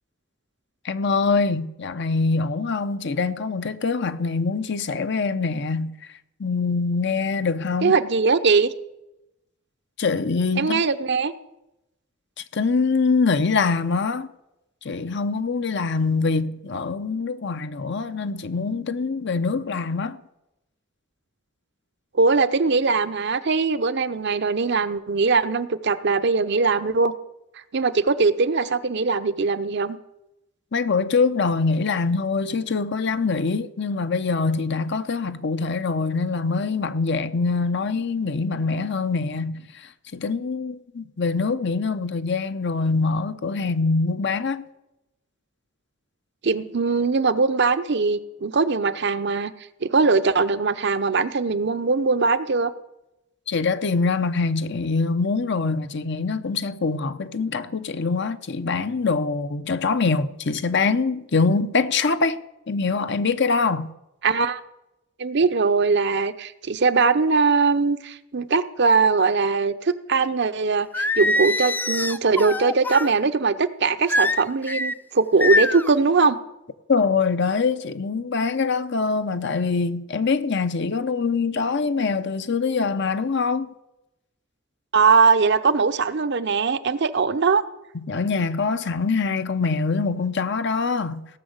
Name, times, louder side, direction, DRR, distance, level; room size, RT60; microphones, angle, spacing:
voice 1, 0.8-5.9 6.4-7.9 10.0-10.8 12.5-14.3 14.8-20.2 30.7-44.6 53.5-62.4 62.7-63.9 76.9-83.7 87.9-91.3, left 4 dB, 60° left, 0.8 m, -24 dB
voice 2, 7.8-8.7 10.6-11.3 22.1-27.1 27.7-30.0 46.4-49.5 49.8-52.7 64.2-64.6 65.2-76.4 84.9-87.6, right 4 dB, 60° right, 0.7 m, -21 dB
Singing, 70.9-73.1 74.1-74.9 75.4-75.9, left 2 dB, 10° left, 0.4 m, -23 dB
17.0 x 6.3 x 8.0 m
head